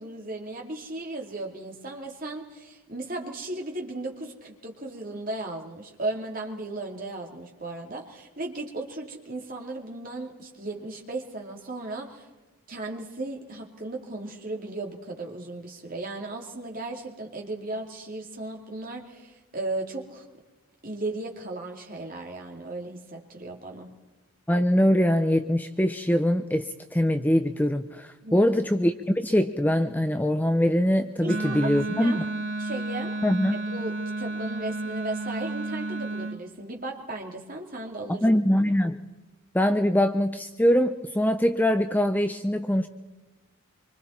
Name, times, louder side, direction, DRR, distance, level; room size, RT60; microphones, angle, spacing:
voice 1, 0.0-12.3 12.7-20.2 20.8-23.9 28.2-28.5 31.2-31.7 32.0-32.2 32.6-33.2 33.5-38.2, right 2 dB, 40° right, 1 dB, 2.7 m, -36 dB
voice 2, 24.5-32.2 33.2-33.5 38.1-39.0 39.5-42.9, equal, 10° left, 8 dB, 0.6 m, -23 dB
Wind instrument woodwind instrument, 31.2-36.4, right 2 dB, 55° right, 2.0 m, -32 dB
25.5 x 24.5 x 4.4 m, 1.2 s
head